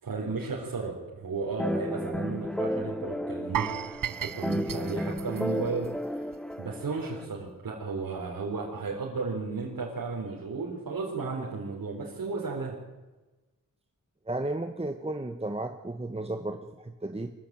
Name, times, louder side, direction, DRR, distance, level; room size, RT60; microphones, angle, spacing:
voice 1, 0.0-6.3 6.6-12.7, right 4 dB, 85° right, -3 dB, 4.1 m, -34 dB
sound 1, 1.6-7.3, equal, ahead, 0.7 m, -33 dB
sound 2, 3.5-6.5 6.8-7.0 7.5-7.6, right 10 dB, 70° right, 0.6 m, -36 dB
voice 2, 14.3-17.3, right 2 dB, 20° right, 6 dB, 1.2 m, -34 dB
23.5 x 14.5 x 9.0 m, 1.2 s
wide cardioid pair, 95°, 33 cm